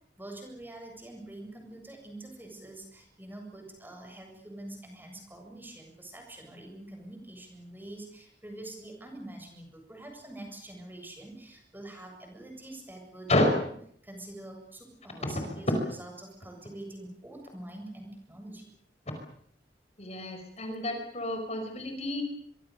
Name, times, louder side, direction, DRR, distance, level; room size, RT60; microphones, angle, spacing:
voice 1, 0.2-13.3 14.0-18.7, right 1 dB, 10° right, 3 dB, 7.5 m, -45 dB
voice 2, 15.2-15.6 20.0-22.2, left 1 dB, 40° left, 5 dB, 5.0 m, -29 dB
26.0 x 24.0 x 6.9 m, 0.67 s
head